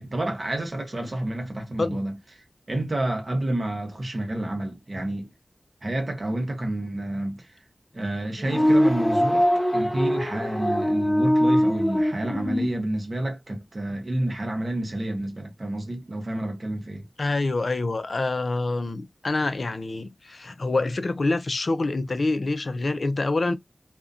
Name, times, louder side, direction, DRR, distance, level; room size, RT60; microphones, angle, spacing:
voice 1, 0.0-5.3 5.8-7.6 7.9-17.1, right 1 dB, 55° right, 0.7 m, -29 dB
sound 1, 8.4-12.7, equal, 25° left, 0.9 m, -22 dB
voice 2, 17.2-23.5, left 2 dB, 65° left, 0.4 m, -26 dB
2.4 x 2.1 x 2.4 m
wide cardioid pair, 75°, 0 cm